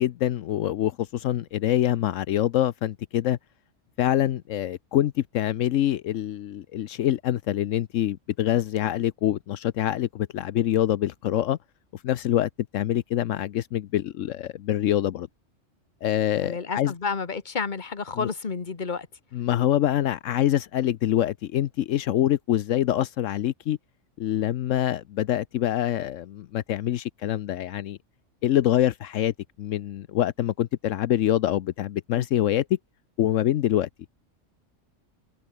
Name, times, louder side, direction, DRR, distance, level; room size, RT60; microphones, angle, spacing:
voice 1, 0.0-3.4 4.0-11.6 11.9-15.3 16.0-16.9 18.2-18.3 19.3-23.8 24.2-28.0 28.4-29.3 29.6-32.8 33.2-33.9, left 12 dB, 80° left, 1.0 m, -25 dB
voice 2, 16.4-19.1, left 5 dB, 40° left, 1.6 m, -30 dB
omnidirectional pair, 1.3 m